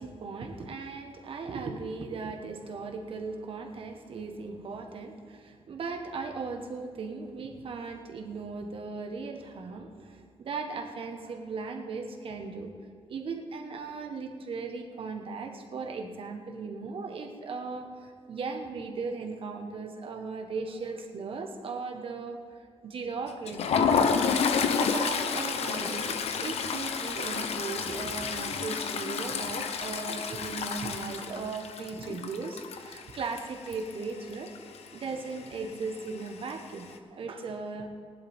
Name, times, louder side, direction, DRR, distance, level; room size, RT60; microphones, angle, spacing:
voice 1, 0.0-12.7 13.1-22.4 22.8-24.3 24.7-34.5 34.9-37.9, right 4 dB, 60° right, 4 dB, 1.4 m, -37 dB
Toilet flush, 23.3-34.0 34.3-34.6 34.9-35.0 36.0-36.5, left 6 dB, 80° left, 0.9 m, -30 dB
19.0 x 11.5 x 3.6 m, 2.1 s
wide cardioid pair, 155°, 11 cm